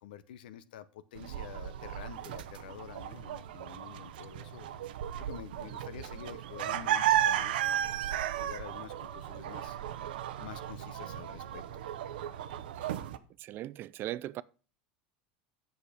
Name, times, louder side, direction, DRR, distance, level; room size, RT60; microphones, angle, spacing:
voice 1, 0.0-4.7 5.2-9.8 10.4-11.8, left 10 dB, 85° left, 0.8 m, -48 dB
sound 1, 1.2-13.2, right 11 dB, 85° right, 0.7 m, -34 dB
voice 2, 13.4-14.4, right 14 dB, 45° right, 0.4 m, -39 dB
8.2 x 6.6 x 5.0 m
supercardioid pair, 100°, 5 cm